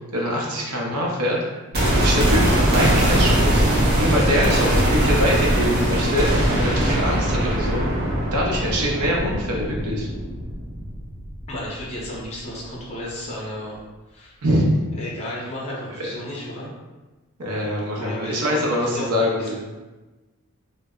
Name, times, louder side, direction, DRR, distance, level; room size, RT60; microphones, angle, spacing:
voice 1, 0.1-6.3 6.6-7.8 8.3-10.1 14.4-14.7 16.0-16.1 17.4-19.6, equal, 85° right, -2 dB, 0.6 m, -24 dB
sound 1, 1.7-11.7 12.0-12.1, right 1 dB, 45° right, 0.6 m, -21 dB
voice 2, 11.5-13.8 14.1-14.4 15.0-16.7 17.9-19.1 19.4-19.6, left 1 dB, 30° left, -5 dB, 0.6 m, -33 dB
2.1 x 2.0 x 3.5 m, 1.2 s
head